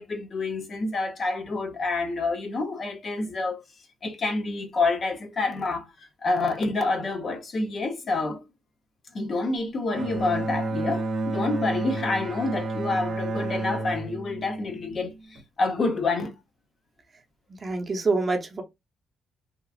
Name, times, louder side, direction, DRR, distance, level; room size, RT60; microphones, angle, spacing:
voice 1, 0.0-3.6 4.0-8.4 9.1-16.4, left 3 dB, 45° left, 0.7 m, -28 dB
Bowed string instrument, 9.9-15.4, right 2 dB, 65° right, 0.7 m, -30 dB
voice 2, 17.6-18.6, right 3 dB, 35° right, 0.7 m, -26 dB
2.9 x 2.3 x 2.4 m
cardioid pair, 90°, 0 cm